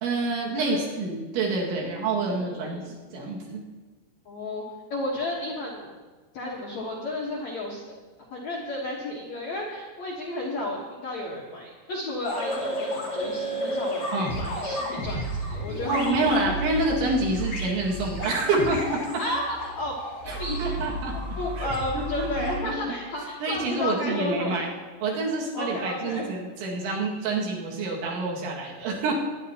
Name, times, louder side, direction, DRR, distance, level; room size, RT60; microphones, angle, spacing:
voice 1, 0.0-2.8 3.1-3.6 14.1-14.4 15.9-19.0 20.3-21.2 21.6-21.7 21.9-22.7 23.4-24.7 25.0-29.1, right 3 dB, 90° right, -4 dB, 4.4 m, -27 dB
voice 2, 1.8-2.9 4.3-4.6 4.9-5.9 6.3-7.8 8.3-14.1 14.4-16.6 19.2-20.0 20.2-20.8 21.4-24.6 25.5-26.3, left 1 dB, 60° left, -3 dB, 1.9 m, -32 dB
sound 1, 12.2-22.6, equal, 25° left, 3.0 m, -32 dB
21.5 x 11.0 x 2.9 m, 1.3 s
omnidirectional pair, 5.1 m